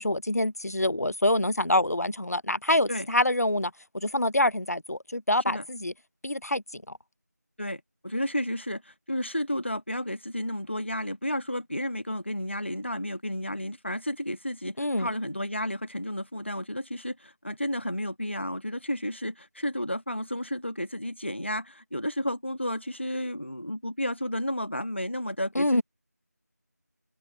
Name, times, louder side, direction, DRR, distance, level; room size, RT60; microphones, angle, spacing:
voice 1, 0.0-5.9 6.2-7.0 14.8-15.1 25.5-25.8, left 1 dB, 65° left, 0.7 m, -26 dB
voice 2, 7.6-25.8, equal, 40° left, 1.2 m, -32 dB
open air
figure-of-eight pair, 180°, 9 cm